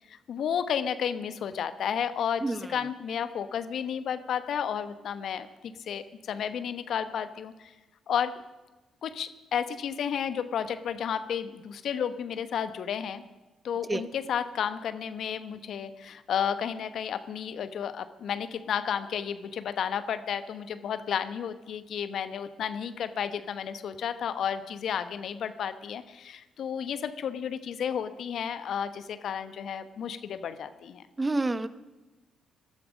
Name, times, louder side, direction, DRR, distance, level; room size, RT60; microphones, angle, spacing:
voice 1, 0.1-7.7 8.1-8.4 9.0-13.2 13.6-31.0, left 8 dB, 65° left, 12 dB, 1.0 m, -32 dB
voice 2, 31.2-31.7, right 2 dB, 25° right, 13 dB, 1.0 m, -27 dB
19.5 x 12.5 x 5.2 m, 1.1 s
hypercardioid pair, 45°, 0 cm